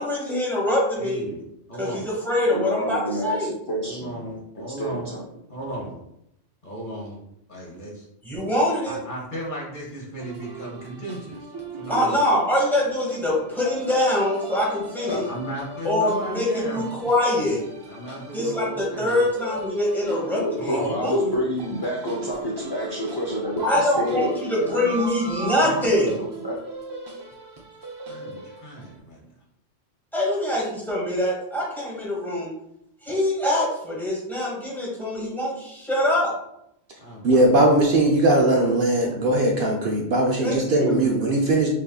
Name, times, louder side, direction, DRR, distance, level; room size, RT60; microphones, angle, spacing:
voice 1, 0.0-1.3 1.8-3.5 8.2-9.0 11.9-15.2 15.8-17.6 18.3-21.3 23.6-26.1 30.1-32.5 33.0-36.3 40.4-41.0, left 1 dB, ahead, -4 dB, 1.3 m, -24 dB
voice 2, 1.0-1.4 1.7-2.1 3.8-5.1 5.5-6.0 6.6-7.2 7.5-8.0 8.9-12.2 15.3-17.0 17.8-19.3 20.6-21.0 23.9-24.0 24.6-26.4 28.1-29.3 37.0-37.3, right 1 dB, 50° left, -4 dB, 1.4 m, -36 dB
voice 3, 2.5-4.2 4.8-5.2 15.1-15.2 20.3-24.3 25.9-26.0 26.4-26.6, equal, 30° left, -4 dB, 0.5 m, -28 dB
sound 1, 10.2-28.9, right 3 dB, 40° right, 0.3 m, -37 dB
voice 4, 37.2-41.7, right 1 dB, 60° right, 0 dB, 0.7 m, -19 dB
6.1 x 2.6 x 2.3 m, 0.78 s
omnidirectional pair, 1.1 m